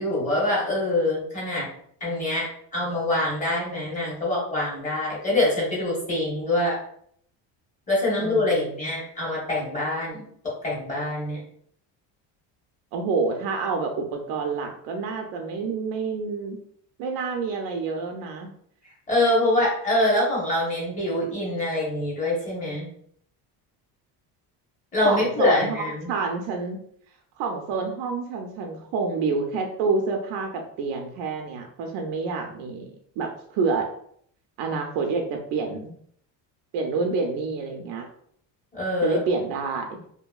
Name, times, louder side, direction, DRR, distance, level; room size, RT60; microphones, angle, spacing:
voice 1, 0.0-1.7 2.0-2.5 2.7-6.8 7.9-10.2 10.6-11.4 19.1-22.9 24.9-26.1 38.7-39.2, left 1 dB, 20° left, -6 dB, 0.9 m, -24 dB
voice 2, 8.2-8.9 12.9-16.6 17.0-18.5 25.0-26.8 27.4-32.9 33.2-33.9 34.6-35.9 36.7-38.1 39.0-40.0, right 4 dB, 80° right, 3 dB, 0.5 m, -28 dB
2.7 x 2.6 x 2.3 m, 0.65 s
cardioid pair, 175°, 42 cm